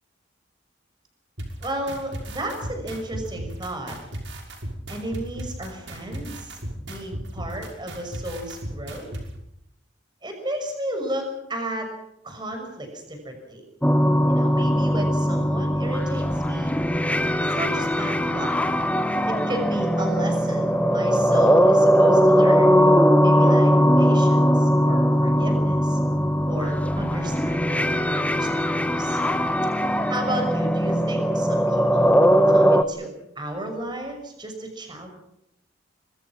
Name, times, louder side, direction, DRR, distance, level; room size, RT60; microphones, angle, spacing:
sound 1, 1.4-9.2, right 1 dB, 75° right, 6.2 m, -35 dB
voice 1, 1.6-4.0 4.9-6.6 6.9-9.1 10.2-11.9 12.2-13.6 14.3-16.8 17.4-18.5 19.3-22.7 23.2-26.0 26.5-29.2 30.1-32.2 32.4-33.1 33.4-35.1, right 1 dB, 25° right, 4 dB, 6.3 m, -33 dB
sound 2, 13.8-32.8, equal, 10° left, 1.1 m, -20 dB
25.5 x 23.0 x 6.0 m, 0.78 s
head